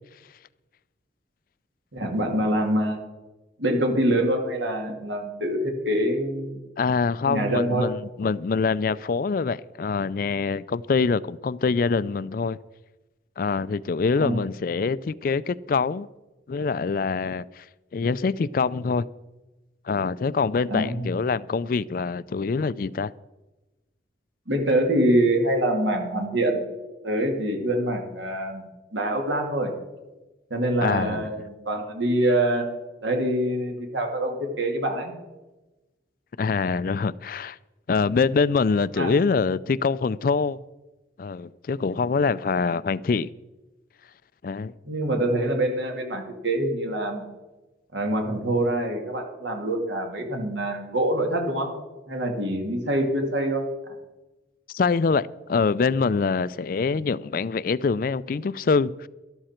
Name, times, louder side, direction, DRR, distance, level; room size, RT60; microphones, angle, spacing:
voice 1, 1.9-3.0 3.6-6.6 7.3-7.9 14.2-14.5 20.7-21.2 24.5-26.6 27.0-28.6 28.9-29.7 30.5-32.7 33.0-35.1 39.0-39.1 44.8-47.2 47.9-51.7 52.1-53.7, right 1 dB, 80° right, 2.4 m, -25 dB
voice 2, 6.8-12.6 13.4-16.1 16.5-17.6 17.9-19.1 19.9-23.1 30.8-31.3 36.4-37.6 37.9-40.6 41.2-43.3 44.4-44.7 54.7-59.1, left 4 dB, 50° left, 0.3 m, -24 dB
12.5 x 12.5 x 4.4 m
head